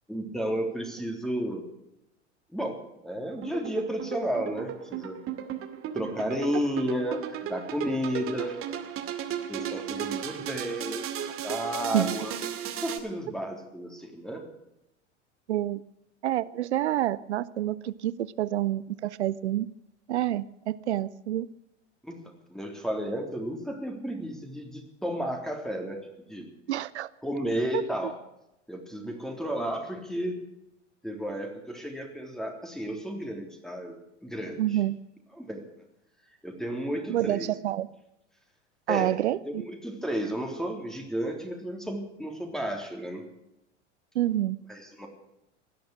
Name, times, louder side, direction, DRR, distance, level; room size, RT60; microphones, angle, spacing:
voice 1, 0.1-1.7 2.5-2.8 3.0-5.2 5.9-8.6 9.5-12.3 12.8-14.5 22.0-22.1 22.5-26.5 27.2-28.2 28.7-30.4 31.0-33.9 34.2-34.6 35.3-35.6 36.4-37.5 38.9-39.2 39.5-43.2 44.7-45.1, equal, ahead, 3.5 m, -32 dB
sound 1, 3.2-13.0, right 9 dB, 35° right, 2.4 m, -35 dB
voice 2, 15.5-15.8 16.2-19.7 20.1-21.5 26.7-27.1 27.7-27.8 34.6-35.0 37.1-37.9 38.9-39.6 44.1-44.6, right 13 dB, 70° right, 0.7 m, -28 dB
18.0 x 12.0 x 6.4 m
figure-of-eight pair, 85°, 36 cm